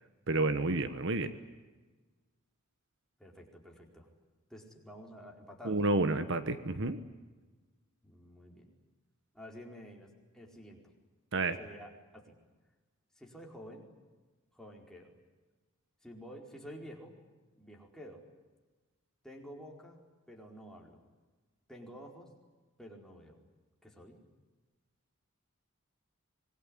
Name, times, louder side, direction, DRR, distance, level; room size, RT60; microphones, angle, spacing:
voice 1, 0.3-1.3 5.6-7.0 11.3-11.6, right 2 dB, 60° right, 11 dB, 1.4 m, -30 dB
voice 2, 3.2-4.1 4.5-5.8 8.0-8.7 9.3-10.8 11.6-12.4 13.2-13.9 14.5-15.1 16.0-17.2 17.5-18.2 19.2-20.0 20.3-21.0 21.7-22.3 22.8-23.4 23.8-24.2, equal, 5° left, 0 dB, 4.6 m, -50 dB
26.0 x 21.5 x 10.0 m, 1.3 s
head